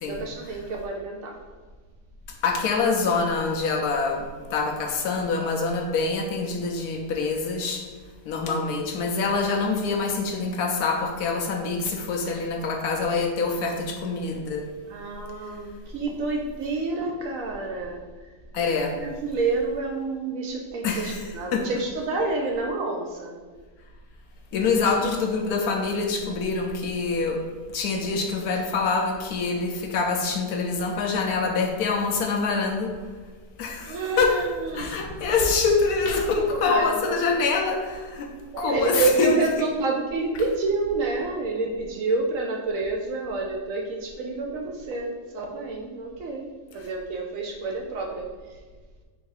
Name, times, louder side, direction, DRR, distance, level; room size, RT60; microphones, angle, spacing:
voice 1, 0.0-1.4 14.9-18.0 19.0-23.3 33.8-35.0 36.5-37.3 38.5-48.3, right 3 dB, 70° right, 1 dB, 0.8 m, -28 dB
voice 2, 2.4-7.9 8.2-14.7 18.5-19.0 20.8-21.3 21.5-21.7 24.5-27.5 27.7-32.9 33.6-34.4 34.7-38.3 38.6-39.7, left 4 dB, 70° left, 2 dB, 1.0 m, -25 dB
3.8 x 2.7 x 4.5 m, 1.4 s
omnidirectional pair, 1.8 m